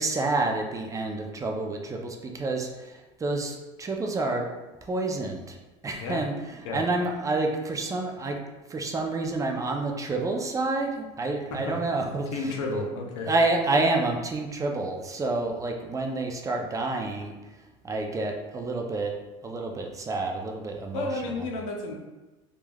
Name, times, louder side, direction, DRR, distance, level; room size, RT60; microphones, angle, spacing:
voice 1, 0.0-4.5 4.9-5.6 5.8-8.4 8.7-12.9 13.2-17.3 17.8-19.1 19.4-21.5, right 2 dB, 20° right, 2 dB, 0.4 m, -29 dB
voice 2, 12.3-13.3 20.9-22.0, left 2 dB, 90° left, 1 dB, 0.5 m, -31 dB
3.1 x 2.3 x 2.2 m, 1.1 s
supercardioid pair, 95°, 16 cm